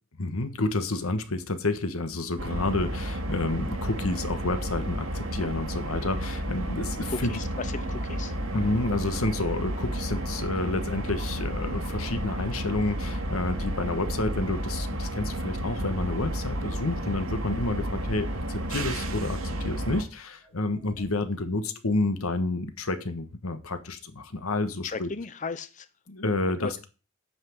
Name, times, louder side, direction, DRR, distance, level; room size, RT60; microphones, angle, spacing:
voice 1, 0.2-7.3 8.5-25.1 26.1-26.9, left 2 dB, 90° left, 10 dB, 1.4 m, -30 dB
sound 1, 2.4-20.0, right 1 dB, 80° right, 2.4 m, -32 dB
voice 2, 7.1-8.4 24.8-25.9 26.6-26.8, left 4 dB, 35° left, 13 dB, 0.6 m, -35 dB
sound 2, 20.4-21.1, right 1 dB, 70° left, 4.1 m, -46 dB
9.3 x 5.9 x 7.2 m, 0.34 s
head